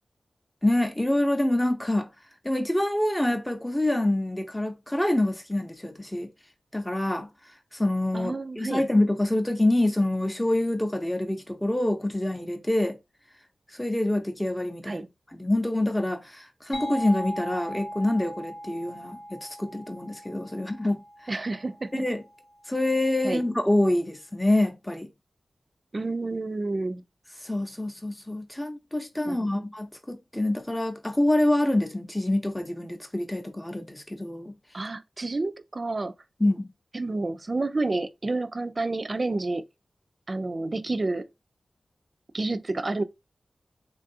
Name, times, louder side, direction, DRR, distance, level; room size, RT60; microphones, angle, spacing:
voice 1, 0.6-2.1 2.4-6.3 6.7-7.3 7.7-13.0 13.7-15.0 15.3-21.0 21.9-22.2 22.7-25.1 27.4-34.5 36.4-36.7, left 1 dB, 15° left, 0.6 m, -26 dB
voice 2, 8.1-8.9 14.8-15.1 21.3-22.0 23.2-23.4 25.9-27.0 29.3-29.6 34.7-36.1 36.9-39.6 40.3-41.3 42.3-43.0, right 2 dB, 45° right, 0.3 m, -29 dB
sound 1, 16.7-22.2, equal, 85° left, 1.1 m, -39 dB
3.2 x 2.3 x 2.7 m
cardioid pair, 45°, 0 cm